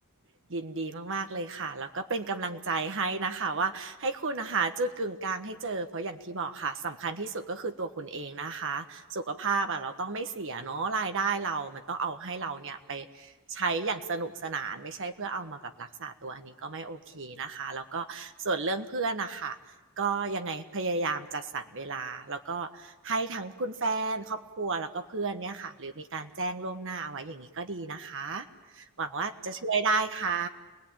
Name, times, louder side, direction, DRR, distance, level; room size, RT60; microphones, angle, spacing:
voice 1, 0.5-19.6 20.0-28.5 28.7-30.5, right 4 dB, 60° right, 7 dB, 1.4 m, -32 dB
29.0 x 20.5 x 8.9 m, 1.1 s
head